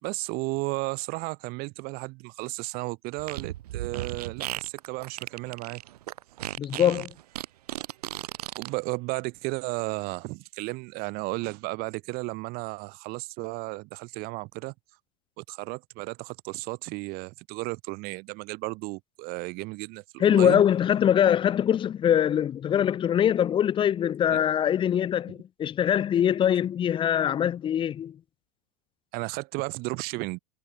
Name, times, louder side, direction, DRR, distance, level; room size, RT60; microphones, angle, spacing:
voice 1, 0.0-5.8 8.6-14.7 15.4-20.6 24.3-24.4 29.1-30.4, right 25 dB, 45° right, 4.2 m, -34 dB
Fart, 3.2-8.7, right 14 dB, 65° right, 2.7 m, -35 dB
voice 2, 6.6-7.1 20.2-28.2, left 9 dB, 25° left, 1.1 m, -23 dB
hypercardioid pair, 100°, 21 cm